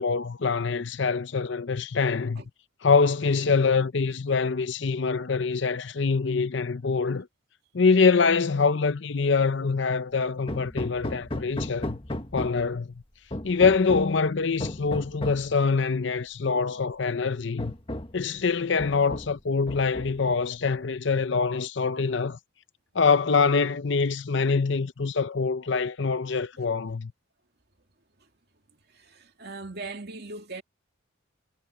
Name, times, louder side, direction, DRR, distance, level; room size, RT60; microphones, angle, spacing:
voice 1, 0.0-2.4 2.8-7.3 7.7-12.0 12.3-12.9 13.4-17.7 18.1-22.4 22.9-27.1, left 4 dB, 60° left, 0.6 m, -24 dB
Hammer, 10.5-12.8 13.3-14.2 14.6-15.5 16.5-16.6 17.1-17.2 17.6-18.2 18.8-19.4 19.7-20.3, left 1 dB, 25° left, 1.4 m, -35 dB
voice 2, 28.9-30.6, right 3 dB, 50° right, 2.5 m, -39 dB
head